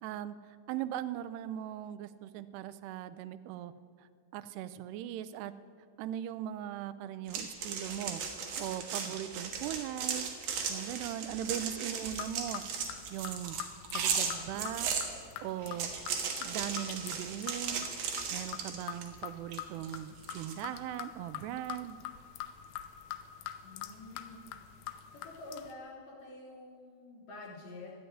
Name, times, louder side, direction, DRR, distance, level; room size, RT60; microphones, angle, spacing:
voice 1, 0.0-3.7 4.3-5.5 6.0-8.2 8.6-10.3 10.7-12.6 13.1-13.6 13.9-14.9 15.4-15.9 16.4-17.9 18.3-22.0, right 11 dB, 80° right, 13 dB, 2.4 m, -39 dB
sound 1, 7.3-15.1 15.6-19.1 19.5-20.5, right 6 dB, 65° right, 2.8 m, -36 dB
sound 2, 11.9-25.7, left 11 dB, 85° left, 2.0 m, -45 dB
voice 2, 23.6-24.4 25.1-27.9, left 2 dB, 60° left, -4 dB, 5.0 m, -48 dB
13.5 x 10.0 x 9.6 m, 2.2 s
omnidirectional pair, 5.2 m